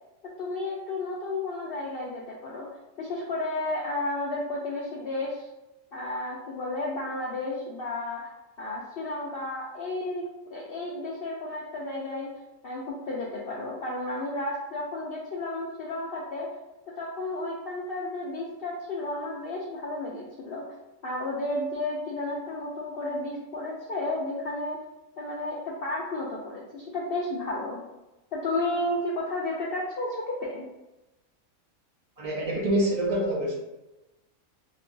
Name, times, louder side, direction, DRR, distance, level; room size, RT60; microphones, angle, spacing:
voice 1, 0.4-2.7 3.0-5.5 5.9-8.2 8.6-10.2 10.5-12.3 12.6-16.5 17.0-20.6 21.0-24.8 25.2-27.8 28.3-30.7, left 2 dB, 80° left, -4 dB, 0.5 m, -32 dB
voice 2, 32.2-33.6, right 1 dB, 35° right, -4 dB, 0.6 m, -26 dB
3.1 x 2.8 x 2.5 m, 1.0 s
omnidirectional pair, 1.5 m